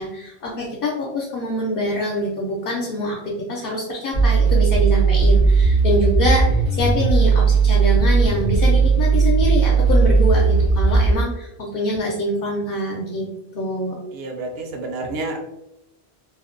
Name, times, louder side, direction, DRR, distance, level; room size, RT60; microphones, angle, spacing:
voice 1, 0.0-6.5 6.7-13.3 13.5-14.0, left 1 dB, 65° left, -3 dB, 0.7 m, -24 dB
sound 1, 4.1-11.2, right 4 dB, 35° left, 0.5 m, -16 dB
voice 2, 14.1-15.5, right 2 dB, 70° right, 2 dB, 0.8 m, -29 dB
2.6 x 2.1 x 2.4 m, 0.87 s
omnidirectional pair, 1.1 m